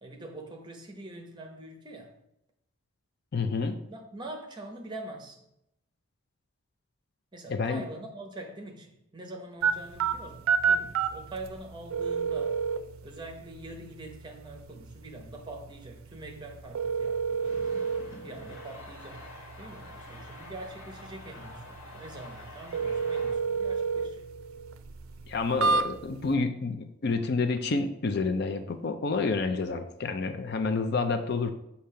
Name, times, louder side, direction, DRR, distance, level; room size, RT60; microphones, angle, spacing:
voice 1, 0.0-2.1 3.9-5.4 7.3-12.6 13.0-17.6 18.2-19.3 19.6-24.2, right 2 dB, 20° right, 0.8 m, -44 dB
voice 2, 3.3-3.8 7.5-7.8 25.3-31.5, left 4 dB, 50° left, 0.4 m, -29 dB
sound 1, 9.6-26.3, right 5 dB, 75° right, 0.4 m, -32 dB
sound 2, 17.4-23.3, left 2 dB, 75° left, 1.7 m, -47 dB
6.6 x 2.8 x 5.5 m
head